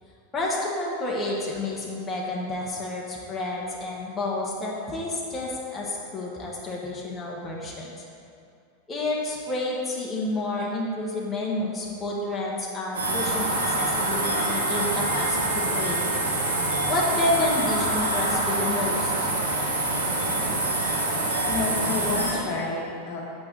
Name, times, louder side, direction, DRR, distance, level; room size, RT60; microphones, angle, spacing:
voice 1, 0.3-7.9 8.9-16.0 16.9-19.3 20.2-20.3, left 2 dB, 20° left, -5 dB, 1.5 m, -29 dB
sound 1, 12.9-22.3, right 2 dB, 75° right, 1.7 m, -25 dB
voice 2, 21.5-23.2, left 3 dB, 50° left, -3 dB, 1.5 m, -29 dB
8.6 x 6.2 x 4.0 m, 2.5 s
figure-of-eight pair, 90°, 0 cm